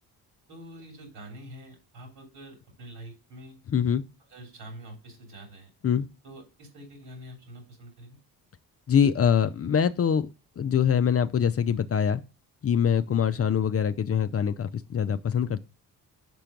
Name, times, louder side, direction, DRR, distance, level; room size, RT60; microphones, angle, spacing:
voice 1, 0.5-3.6 4.3-5.7 6.2-8.2, right 1 dB, 75° right, 3.3 m, -46 dB
voice 2, 3.7-4.0 5.8-6.1 8.9-10.3 10.6-12.2 12.6-15.6, left 8 dB, 35° left, 0.5 m, -24 dB
6.1 x 4.4 x 5.1 m
supercardioid pair, 65°, 41 cm